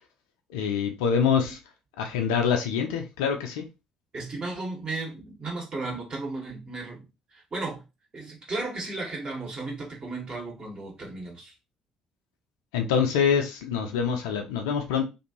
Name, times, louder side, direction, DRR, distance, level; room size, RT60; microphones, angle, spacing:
voice 1, 0.5-1.6 2.0-3.7 12.7-15.0, left 7 dB, 70° left, 0.5 m, -25 dB
voice 2, 4.1-7.0 7.3-7.8 8.1-11.5, right 3 dB, 35° right, 1.3 m, -34 dB
2.6 x 2.5 x 2.9 m
figure-of-eight pair, 50°, 3 cm